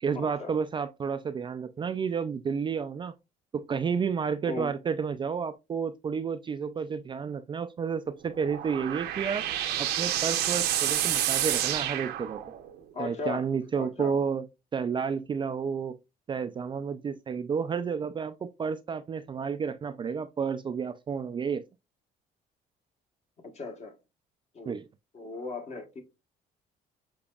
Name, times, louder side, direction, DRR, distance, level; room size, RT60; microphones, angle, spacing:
voice 1, 0.0-3.1 3.5-9.4 9.8-12.4 13.0-14.5 14.7-15.9 16.3-21.6 24.7-24.9, right 6 dB, 30° right, 0.3 m, -31 dB
sound 1, 8.2-12.8, right 11 dB, 80° right, 0.8 m, -29 dB
voice 2, 12.9-13.4 13.7-14.1 23.4-24.0 24.5-24.7 25.1-26.0, left 4 dB, 40° left, 1.2 m, -37 dB
6.8 x 2.9 x 2.3 m
cardioid pair, 110°, 17 cm